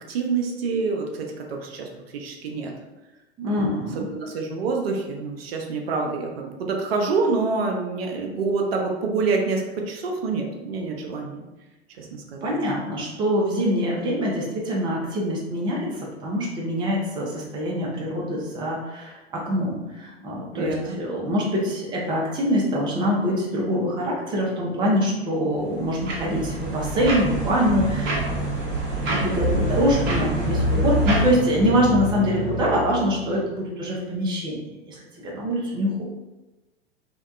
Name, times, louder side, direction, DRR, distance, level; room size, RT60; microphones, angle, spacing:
voice 1, 0.1-2.7 3.5-11.4 12.0-12.6 20.5-21.0, right 4 dB, 65° right, 1 dB, 0.5 m, -27 dB
voice 2, 3.4-4.1 12.4-28.6 28.9-34.6 34.9-36.0, equal, 15° right, -3 dB, 0.4 m, -24 dB
sound 1, 25.5-31.3, right 3 dB, 35° right, 0.8 m, -28 dB
sound 2, 29.4-33.5, left 1 dB, 60° left, 1.0 m, -27 dB
2.6 x 2.1 x 2.3 m, 1.1 s
figure-of-eight pair, 90°, 33 cm